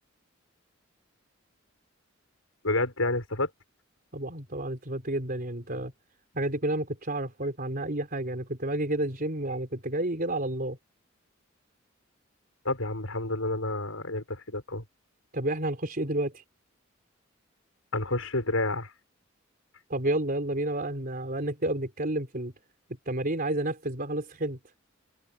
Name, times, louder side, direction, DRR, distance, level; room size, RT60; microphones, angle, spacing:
voice 1, 2.6-3.5 12.7-14.8 17.9-18.9, left 2 dB, 85° left, 6.8 m, -29 dB
voice 2, 4.1-5.9 6.3-10.8 15.3-16.4 19.9-22.5 23.1-24.6, right 1 dB, 45° right, 4.2 m, -30 dB
head